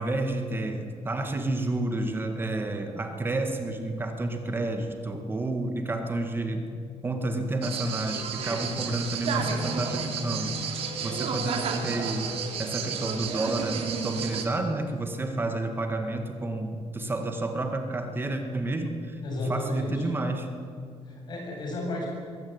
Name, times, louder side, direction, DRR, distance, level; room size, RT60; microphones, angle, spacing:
voice 1, 0.0-6.6 7.0-12.2 12.6-19.2 19.5-20.5, right 2 dB, 20° right, 5 dB, 1.8 m, -30 dB
sound 1, 5.4-11.3, left 3 dB, 70° left, 2.3 m, -42 dB
sound 2, 7.6-14.4, right 6 dB, 60° right, 2.9 m, -32 dB
voice 2, 19.2-20.1 21.0-22.1, left 2 dB, 40° left, 0 dB, 7.7 m, -33 dB
22.5 x 16.5 x 9.6 m, 2.2 s
cardioid pair, 170°, 11 cm